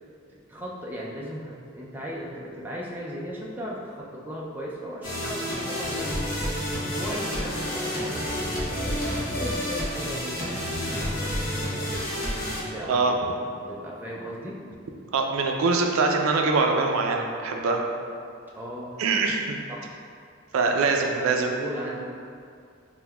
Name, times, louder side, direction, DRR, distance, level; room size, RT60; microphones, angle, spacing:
voice 1, 0.3-6.4 6.9-12.2 12.7-14.6 18.6-19.0 19.7-19.9 20.6-20.7 21.1-22.0, equal, 10° right, -5 dB, 0.3 m, -37 dB
sound 1, 5.0-12.6, equal, 45° left, 0.7 m, -29 dB
voice 2, 15.1-17.8 19.0-19.6 20.5-21.5, right 3 dB, 90° right, 2 dB, 0.4 m, -23 dB
5.8 x 2.2 x 2.2 m, 2.3 s
head